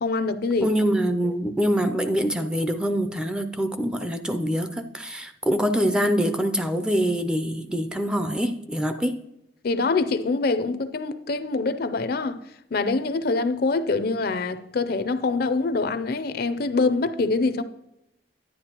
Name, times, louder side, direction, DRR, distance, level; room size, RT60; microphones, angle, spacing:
voice 1, 0.0-0.7 9.6-12.4 12.7-17.6, left 3 dB, 60° left, 0.5 m, -24 dB
voice 2, 0.6-9.3, equal, 5° right, 0.4 m, -24 dB
10.5 x 9.4 x 2.9 m
head